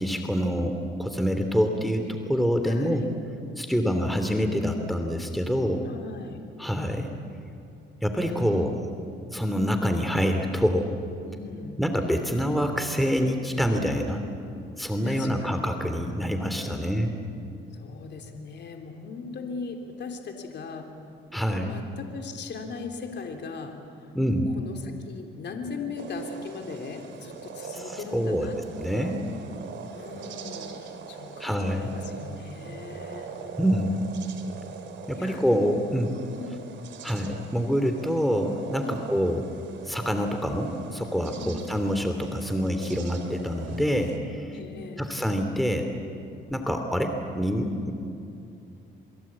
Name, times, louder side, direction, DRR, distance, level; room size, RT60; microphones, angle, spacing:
voice 1, 0.0-3.0 3.6-5.9 6.6-7.1 8.0-8.8 9.3-10.9 11.8-14.2 14.8-17.1 21.3-21.8 24.1-24.5 27.7-28.5 28.8-29.2 31.4-31.9 33.6-34.1 35.1-36.1 37.0-39.4 39.9-44.5 45.0-45.9 46.5-47.9, equal, ahead, 5 dB, 2.7 m, -26 dB
voice 2, 2.6-3.1 3.7-4.0 5.8-6.4 8.3-8.5 11.2-11.8 15.0-15.3 16.7-17.0 17.7-20.9 21.6-23.8 24.3-28.6 28.9-29.1 29.9-33.3 35.1-35.6 36.4-36.6 38.8-39.2 41.4-41.6 44.5-45.1, left 4 dB, 60° left, 3 dB, 3.4 m, -39 dB
sound 1, 26.0-44.2, right 6 dB, 70° right, 3.0 m, -42 dB
28.0 x 22.5 x 8.7 m, 2.7 s
cardioid pair, 90°, 20 cm